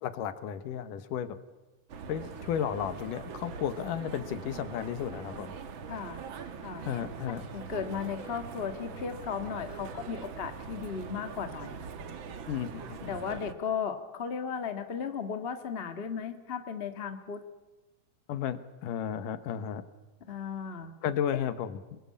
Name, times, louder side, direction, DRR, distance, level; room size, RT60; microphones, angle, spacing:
voice 1, 0.0-1.4 2.1-5.5 6.8-7.4 12.5-13.1 18.3-19.8 21.0-22.0, left 9 dB, 75° left, 12 dB, 2.7 m, -33 dB
sound 1, 1.9-13.5, right 6 dB, 55° right, 1.5 m, -42 dB
voice 2, 5.9-6.2 6.6-6.9 7.5-11.8 13.1-17.4 20.3-20.9, left 6 dB, 40° left, 7 dB, 0.8 m, -35 dB
28.0 x 21.5 x 8.5 m, 1.1 s
omnidirectional pair, 3.9 m